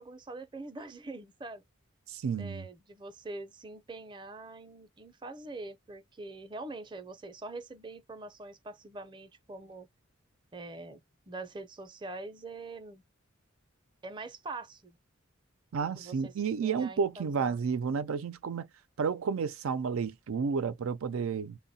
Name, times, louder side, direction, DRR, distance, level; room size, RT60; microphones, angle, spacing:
voice 1, 0.0-1.6 2.4-9.9 10.5-11.0 11.3-13.0 14.0-15.0 15.8-16.3 16.6-17.6, right 2 dB, 25° right, 0.5 m, -44 dB
voice 2, 2.1-2.6 15.7-18.7 19.0-21.6, right 6 dB, 90° right, 0.4 m, -31 dB
3.6 x 2.1 x 4.0 m
head